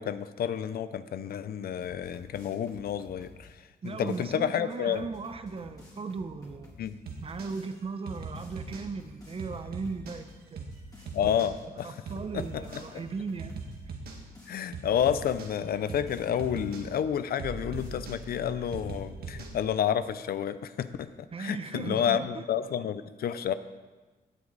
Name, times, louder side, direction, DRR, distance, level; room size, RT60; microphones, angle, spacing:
voice 1, 0.0-3.5 3.8-5.1 6.8-7.0 11.1-11.9 12.3-12.8 14.5-21.1 21.4-23.5, left 9 dB, 65° left, 13 dB, 0.6 m, -30 dB
sound 1, 1.7-4.3 4.7-6.9 7.3-7.8 8.1-10.3 10.7-11.2 11.6-13.8 14.1-17.2 17.6-17.9, left 1 dB, 20° left, 2.8 m, -52 dB
voice 2, 3.8-6.7 7.2-10.7 11.3-11.4 11.8-13.6 21.3-22.4, right 4 dB, 35° right, 10 dB, 0.8 m, -37 dB
sound 2, 7.1-7.5 8.1-8.9 9.4-10.2 10.6-10.8 11.1-11.5 12.1-12.9 13.4-14.2 14.7-15.5 15.9-16.1 16.4-16.9 17.4-19.6, right 3 dB, 70° right, 1.8 m, -40 dB
17.5 x 8.1 x 4.0 m, 1.3 s
cardioid pair, 125°, 17 cm